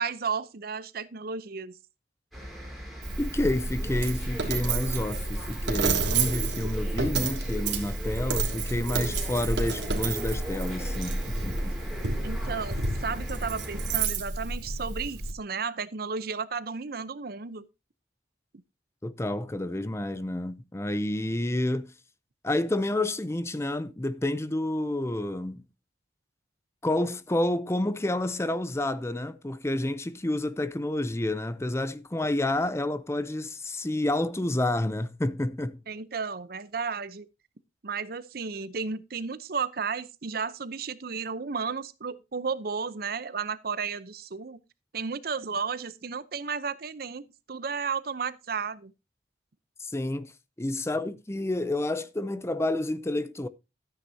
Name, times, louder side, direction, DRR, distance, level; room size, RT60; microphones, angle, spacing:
voice 1, 0.0-1.8 12.2-17.7 35.9-37.3 37.8-44.6 44.9-48.9, right 5 dB, 55° right, 0.7 m, -33 dB
sound 1, 2.3-14.0, equal, ahead, 3.7 m, -39 dB
Coin (dropping), 3.0-15.3, right 3 dB, 80° right, 2.4 m, -30 dB
voice 2, 3.2-11.8 19.0-21.9 22.4-25.7 26.8-35.8 49.8-50.3 50.6-53.5, left 1 dB, 15° left, 0.5 m, -29 dB
13.5 x 9.6 x 2.8 m
head